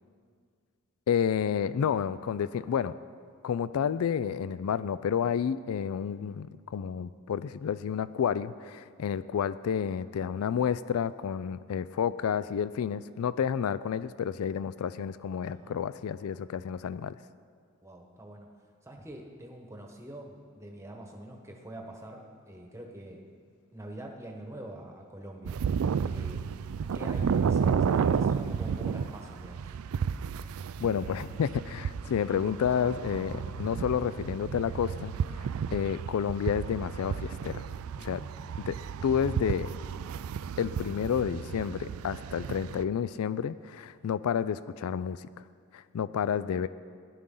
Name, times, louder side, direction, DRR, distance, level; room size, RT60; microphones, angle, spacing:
voice 1, 1.1-2.9 3.4-17.1 30.8-37.6 38.0-38.2 38.7-38.8 39.0-39.7 40.6-45.3 45.7-46.7, left 7 dB, 75° left, 16 dB, 0.3 m, -30 dB
voice 2, 15.4-15.8 17.8-18.5 18.8-23.2 23.7-25.5 26.0-26.5 26.9-29.7 38.0-38.3, right 1 dB, 15° right, 1 dB, 1.1 m, -44 dB
tráfico lejos, 25.4-42.8, right 6 dB, 75° right, 0.3 m, -32 dB
18.0 x 11.0 x 3.8 m, 2.1 s
head